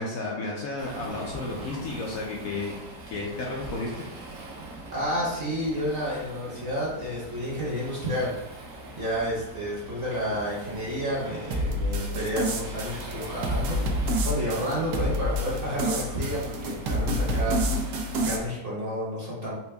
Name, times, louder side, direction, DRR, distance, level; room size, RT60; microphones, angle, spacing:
voice 1, 0.0-2.7 3.1-4.0, left 3 dB, 65° left, -2 dB, 0.9 m, -32 dB
Waves surf, 0.8-18.5, right 2 dB, 60° right, 1.2 m, -41 dB
voice 2, 4.9-8.3 8.9-17.6 17.8-19.5, equal, 40° right, -7 dB, 1.2 m, -30 dB
sound 1, 11.5-18.4, equal, 85° right, 1.2 m, -28 dB
4.4 x 2.2 x 3.3 m, 0.96 s
omnidirectional pair, 1.8 m